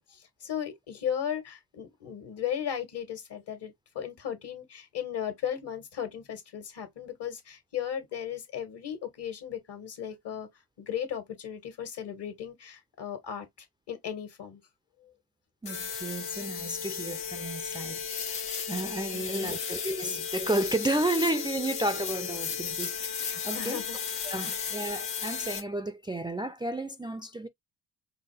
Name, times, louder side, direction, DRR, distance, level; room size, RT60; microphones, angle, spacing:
voice 1, 0.0-10.5 10.8-13.5 13.9-14.6 15.0-15.1 19.1-19.6 23.5-24.0 24.3-24.5, left 9 dB, 65° left, 1.7 m, -36 dB
sound 1, 15.6-25.6, left 6 dB, 85° left, 1.2 m, -35 dB
voice 2, 15.6-23.8 24.3-27.5, right 1 dB, 10° right, 0.4 m, -32 dB
4.7 x 2.2 x 3.3 m
hypercardioid pair, 45°, 44 cm